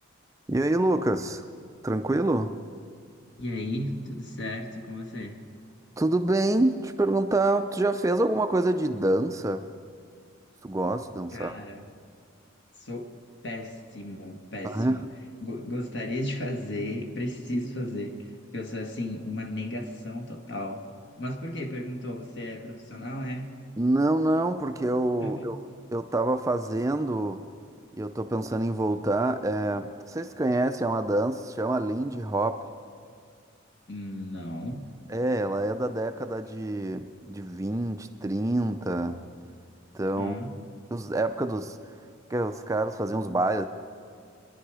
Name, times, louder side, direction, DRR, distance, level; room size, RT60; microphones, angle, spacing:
voice 1, 0.5-1.4 1.8-2.6 6.0-9.7 10.6-11.6 14.6-15.0 23.8-27.4 28.0-32.6 35.1-39.2 39.9-40.3 40.9-41.8 42.3-43.6, right 2 dB, 15° right, 8 dB, 0.4 m, -26 dB
voice 2, 3.4-5.4 11.3-11.9 12.8-13.1 13.4-15.0 15.4-20.8 21.2-23.5 25.2-25.5 33.9-34.8 40.2-40.5, left 1 dB, 55° left, 3 dB, 1.6 m, -34 dB
26.5 x 11.0 x 4.9 m, 2.2 s
head